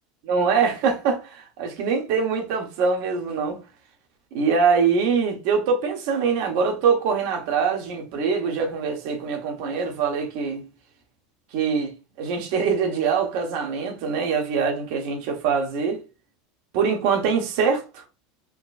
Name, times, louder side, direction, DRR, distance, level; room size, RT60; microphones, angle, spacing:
voice 1, 0.3-3.6 4.3-10.7 11.5-16.0 16.7-18.0, right 5 dB, 65° right, 1.0 m, -23 dB
3.7 x 2.2 x 2.4 m
hypercardioid pair, 95°, 0 cm